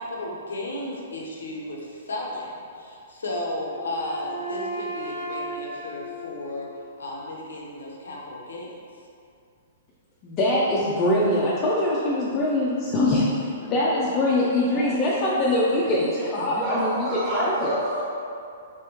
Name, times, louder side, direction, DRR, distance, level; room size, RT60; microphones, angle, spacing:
voice 1, 0.0-6.7 7.0-8.8, left 1 dB, 75° left, -2 dB, 0.6 m, -34 dB
Wind instrument woodwind instrument, 3.4-7.3, right 2 dB, 60° right, 0.8 m, -36 dB
voice 2, 10.2-17.1 17.3-17.8, left 1 dB, 30° left, -6 dB, 0.5 m, -23 dB
voice 3, 14.7-18.0, right 1 dB, 25° right, -10 dB, 1.0 m, -31 dB
3.4 x 3.3 x 2.9 m, 2.4 s
figure-of-eight pair, 115°, 0 cm